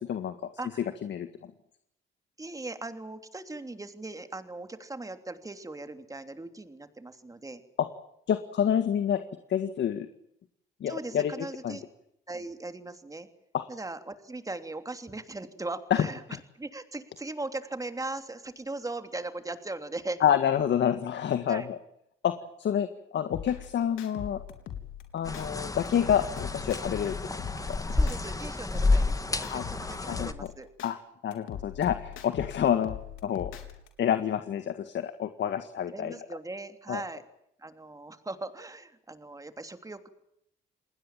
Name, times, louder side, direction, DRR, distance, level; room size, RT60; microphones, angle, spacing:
voice 1, 0.0-0.3 1.0-1.3 8.3-9.2 9.5-10.1 10.8-11.8 13.5-13.7 15.9-16.1 20.2-21.8 22.2-22.3 22.6-24.4 25.1-27.2 27.7-27.8 29.5-29.6 30.1-30.5 30.8-31.0 31.2-33.5 34.0-36.2 36.9-37.0, left 9 dB, 65° left, 9 dB, 1.8 m, -28 dB
voice 2, 0.6-0.9 2.4-7.6 10.9-11.8 12.3-13.3 13.7-16.2 16.5-20.2 21.5-21.7 27.9-30.7 35.9-37.2 37.6-40.1, right 2 dB, 15° right, 8 dB, 3.1 m, -39 dB
sound 1, 23.3-25.5 25.9-28.4 28.7-30.9 31.3-33.9, left 9 dB, 90° left, 4.0 m, -41 dB
sound 2, 25.3-30.3, left 2 dB, 15° left, 1.8 m, -30 dB
28.5 x 20.0 x 7.5 m, 0.75 s
cardioid pair, 90°, 20 cm